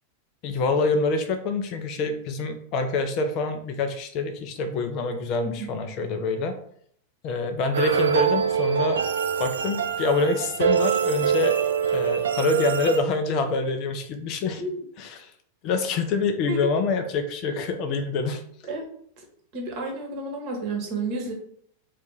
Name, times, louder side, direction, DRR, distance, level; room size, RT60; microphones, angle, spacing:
voice 1, 0.4-6.6 7.2-9.0 9.4-11.6 11.9-14.6 15.0-15.3 15.6-18.4, left 3 dB, 40° left, 6 dB, 0.4 m, -26 dB
sound 1, 7.7-13.0, right 7 dB, 65° right, 0.3 m, -24 dB
voice 2, 19.5-21.3, right 2 dB, 40° right, 1 dB, 1.0 m, -31 dB
2.7 x 2.4 x 3.8 m, 0.64 s
figure-of-eight pair, 90°, 0 cm